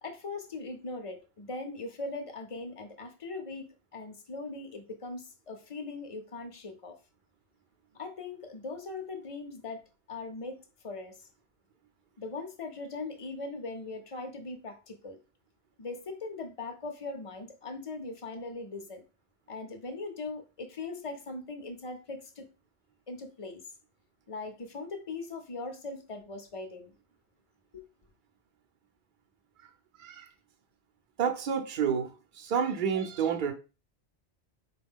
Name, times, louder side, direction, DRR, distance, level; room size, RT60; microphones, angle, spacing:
voice 1, 0.0-7.0 7.9-9.8 10.1-11.3 12.2-15.2 15.8-19.0 19.5-22.5 23.1-23.6 24.3-26.9 27.7-27.8, left 3 dB, 40° left, 0.5 m, -40 dB
voice 2, 31.2-33.5, right 7 dB, 55° right, 0.7 m, -29 dB
4.3 x 2.3 x 3.5 m
omnidirectional pair, 1.1 m